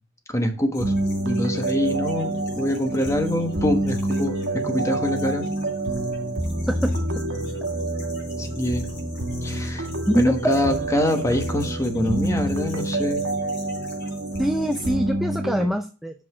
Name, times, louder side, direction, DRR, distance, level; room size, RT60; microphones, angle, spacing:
voice 1, 0.3-0.9 1.2-5.5 8.4-8.9 9.4-9.9 10.2-13.2, left 1 dB, 15° left, 6 dB, 1.2 m, -25 dB
sound 1, 0.7-14.9, left 2 dB, 60° left, 3.6 m, -46 dB
sound 2, 0.8-15.7, right 2 dB, 80° right, 1.3 m, -27 dB
voice 2, 14.4-16.2, equal, ahead, 7 dB, 0.4 m, -24 dB
5.8 x 5.1 x 4.8 m, 0.36 s
head